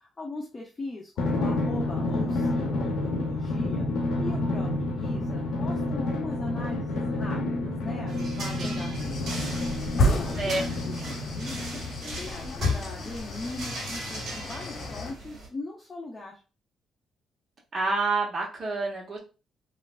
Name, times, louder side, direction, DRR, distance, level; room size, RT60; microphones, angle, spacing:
voice 1, 0.0-3.9 4.2-9.3 10.0-16.4, left 2 dB, 30° left, -2 dB, 0.6 m, -40 dB
Drum, 1.2-12.2, left 2 dB, 80° left, 0.6 m, -29 dB
sound 1, 8.1-15.5, right 2 dB, 65° right, 1.2 m, -40 dB
sound 2, 8.9-15.1, left 1 dB, 60° left, 0.8 m, -31 dB
voice 2, 17.7-19.2, right 3 dB, 45° right, -2 dB, 1.1 m, -28 dB
3.2 x 2.4 x 2.4 m, 0.32 s
cardioid pair, 90°, 0 cm